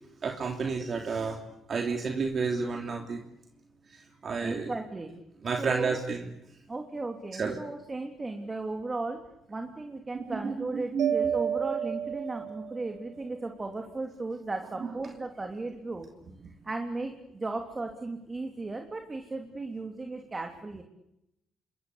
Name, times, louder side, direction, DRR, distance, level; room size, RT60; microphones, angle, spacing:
voice 1, 0.2-1.4 1.7-3.2 3.9-4.7 5.4-6.3 7.4-7.6 10.1-11.2 14.8-14.9, right 5 dB, 45° right, 3 dB, 3.1 m, -31 dB
voice 2, 4.4-5.1 5.6-6.0 6.7-9.2 9.5-16.1 16.6-20.8, right 3 dB, 25° right, 4 dB, 3.4 m, -36 dB
Mallet percussion, 11.0-13.0, right 9 dB, 85° right, 2.1 m, -31 dB
28.0 x 24.0 x 8.4 m, 0.85 s
cardioid pair, 90°, 0 cm